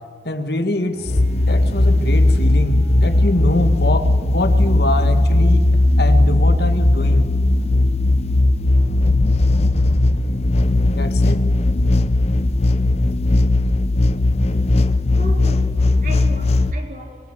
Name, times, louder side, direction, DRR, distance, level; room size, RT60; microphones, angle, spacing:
voice 1, 0.3-1.1 1.5-5.7 6.0-7.3 11.0-11.4, left 1 dB, 60° left, 8 dB, 1.8 m, -24 dB
Bowed string instrument, 0.9-5.9, equal, 85° right, 7.2 m, -40 dB
sound 1, 1.1-16.7, left 2 dB, 35° left, 0.7 m, -17 dB
voice 2, 15.2-17.2, right 1 dB, 45° right, 2 dB, 4.2 m, -35 dB
25.5 x 22.0 x 7.4 m, 2.1 s
head